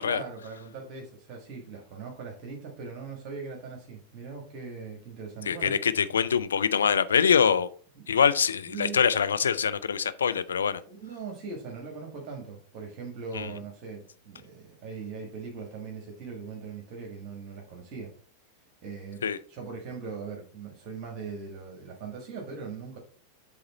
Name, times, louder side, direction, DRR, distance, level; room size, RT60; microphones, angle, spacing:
voice 1, 0.0-5.7 7.9-8.1 8.7-9.0 10.9-18.1 18.8-23.0, right 5 dB, 40° right, 1 dB, 1.5 m, -40 dB
voice 2, 5.5-7.7 8.1-10.8 13.3-13.5 19.2-19.4, left 7 dB, 70° left, 12 dB, 0.4 m, -24 dB
7.7 x 3.6 x 4.1 m, 0.44 s
figure-of-eight pair, 90°, 0 cm